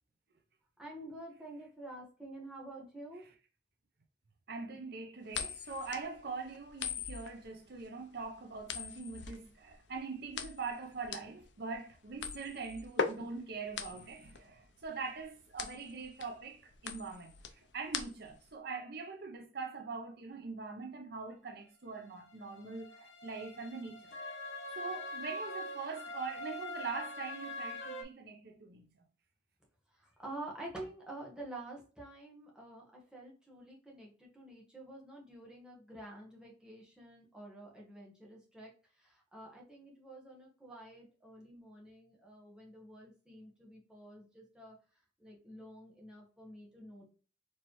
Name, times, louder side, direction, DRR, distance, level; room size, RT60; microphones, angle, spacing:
voice 1, 0.8-3.2 30.0-38.7 39.0-44.8 45.2-47.0, right 1 dB, 5° right, 1.2 m, -49 dB
voice 2, 4.5-24.1 24.8-28.9, right 4 dB, 60° right, 0.7 m, -43 dB
sound 1, 5.3-18.5, left 6 dB, 70° left, 0.5 m, -41 dB
sound 2, 22.3-28.0, left 1 dB, 90° left, 1.0 m, -43 dB
4.4 x 3.3 x 3.0 m
head